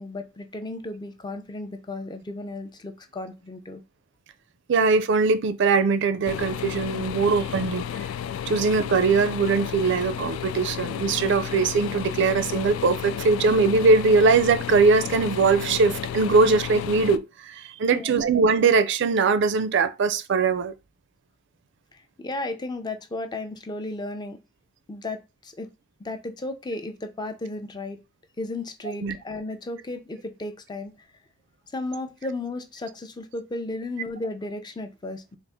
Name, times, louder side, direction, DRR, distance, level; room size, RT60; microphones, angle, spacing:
voice 1, 0.0-3.8 17.9-18.2 21.9-24.4 24.9-25.7 26.0-28.0 28.4-30.9 31.7-35.4, left 2 dB, 20° left, 0.4 m, -34 dB
voice 2, 4.7-7.8 8.5-20.7 29.0-29.2, right 4 dB, 60° right, 0.4 m, -21 dB
sound 1, 6.3-17.2, left 9 dB, 85° left, 0.3 m, -32 dB
3.9 x 2.4 x 3.5 m
head